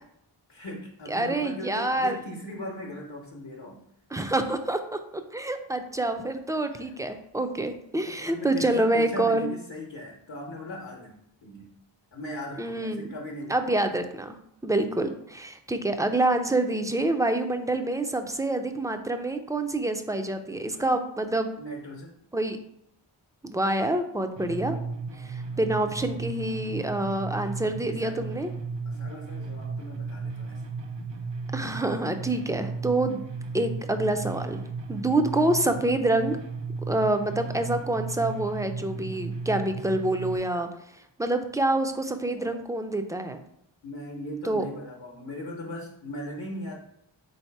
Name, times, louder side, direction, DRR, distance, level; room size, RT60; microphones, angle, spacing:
voice 1, 0.5-3.8 8.1-11.2 11.4-11.7 12.1-13.8 20.7-20.9 21.6-22.1 27.8-28.2 28.8-30.6 42.3-42.6 43.8-46.8, left 1 dB, 60° left, -1 dB, 0.9 m, -38 dB
voice 2, 1.1-2.2 4.1-5.0 5.3-9.5 12.6-13.1 13.5-14.4 14.6-21.5 22.3-22.6 23.4-24.8 25.2-28.5 31.5-33.2 33.5-34.6 34.9-36.4 36.9-40.7 41.2-43.4 44.4-44.6, right 2 dB, 5° right, 7 dB, 0.4 m, -27 dB
sound 1, 24.4-40.4, right 4 dB, 60° right, 0.7 m, -35 dB
3.9 x 2.8 x 4.5 m, 0.75 s
wide cardioid pair, 40°, 49 cm